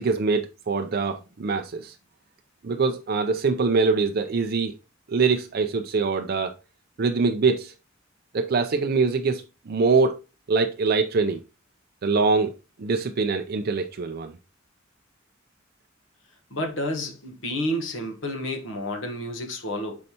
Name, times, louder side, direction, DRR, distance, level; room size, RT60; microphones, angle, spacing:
voice 1, 0.0-2.0 2.6-4.8 5.1-6.5 7.0-7.7 8.3-10.2 10.5-11.4 12.0-12.5 12.8-14.3, right 4 dB, 50° right, 0.4 m, -23 dB
voice 2, 16.5-20.0, left 1 dB, 70° left, 1.2 m, -30 dB
6.5 x 5.3 x 2.8 m
head